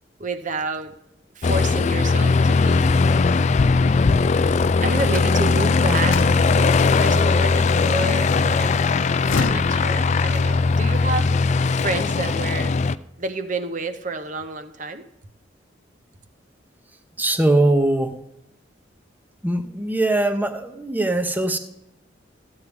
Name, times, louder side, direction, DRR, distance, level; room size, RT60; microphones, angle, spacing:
voice 1, 0.2-0.9 1.3-3.1 4.8-8.8 9.4-11.3 11.8-12.7 13.2-15.0, right 2 dB, 40° right, 9 dB, 0.9 m, -29 dB
Aircraft, 1.4-13.0, left 4 dB, 40° left, 0.3 m, -19 dB
sound 1, 5.0-7.6 8.9-10.7, left 4 dB, 90° left, 0.7 m, -31 dB
voice 2, 17.2-18.2 19.4-21.6, right 2 dB, 10° right, 7 dB, 0.8 m, -21 dB
14.5 x 9.6 x 3.6 m, 0.86 s
head